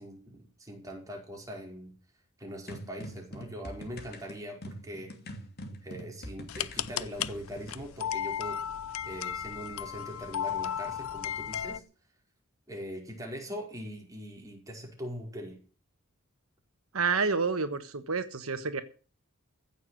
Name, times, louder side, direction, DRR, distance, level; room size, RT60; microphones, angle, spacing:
voice 1, 0.0-1.9 2.4-5.1 5.8-8.6 9.0-11.8 12.7-15.6, equal, 15° right, 0 dB, 5.1 m, -41 dB
sound 1, 2.7-7.8, equal, 50° left, 2.8 m, -44 dB
sound 2, 6.5-11.8, left 9 dB, 80° left, 0.7 m, -35 dB
voice 2, 16.9-18.8, right 4 dB, 85° right, 10 dB, 1.4 m, -29 dB
15.5 x 7.1 x 8.0 m, 0.38 s
head